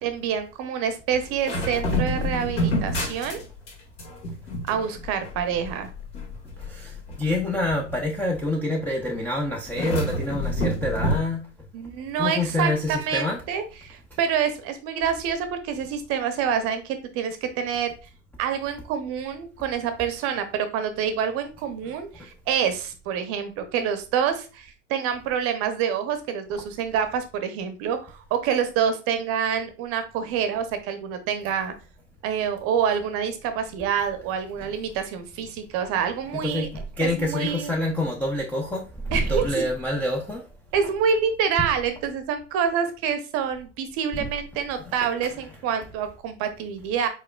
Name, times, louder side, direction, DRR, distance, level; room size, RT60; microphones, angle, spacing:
voice 1, 0.0-3.4 4.7-5.9 11.7-17.9 18.4-31.7 32.2-36.7 37.0-37.7 39.1-39.6 40.7-47.1, right 7 dB, 40° right, 0.7 m, -27 dB
sound 1, 1.1-3.7 4.0-8.4 9.7-11.2, equal, 70° left, 1.9 m, -28 dB
voice 2, 6.6-11.5 12.2-13.4 22.2-22.3 34.6-34.7 36.4-40.5 40.8-40.9 44.1-44.3 44.8-44.9 45.2-45.3, left 1 dB, 5° left, 0.4 m, -27 dB
4.7 x 4.1 x 2.2 m
hypercardioid pair, 90°, 37 cm